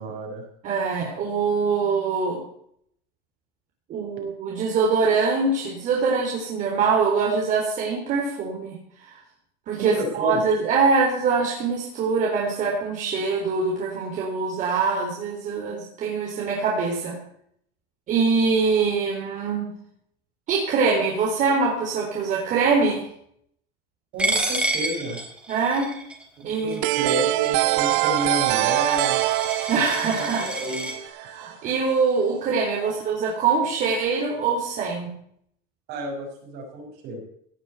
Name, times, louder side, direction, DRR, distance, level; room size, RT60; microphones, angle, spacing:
voice 1, 0.0-0.5 9.8-10.4 24.1-25.2 26.5-29.2 30.1-30.9 32.8-32.9 35.9-37.2, equal, 60° right, 1 dB, 6.5 m, -31 dB
voice 2, 0.6-2.4 3.9-8.8 9.0-9.1 9.7-17.1 18.1-19.7 20.5-23.0 25.5-25.9 26.4-26.8 29.7-30.5 31.2-35.1, right 4 dB, 40° right, -2 dB, 3.9 m, -23 dB
Coin (dropping), 24.2-30.9, right 1 dB, 5° right, 3.3 m, -30 dB
sound 1, 26.8-31.5, right 19 dB, 75° right, 0.7 m, -23 dB
17.0 x 7.3 x 8.2 m, 0.68 s
cardioid pair, 145°, 19 cm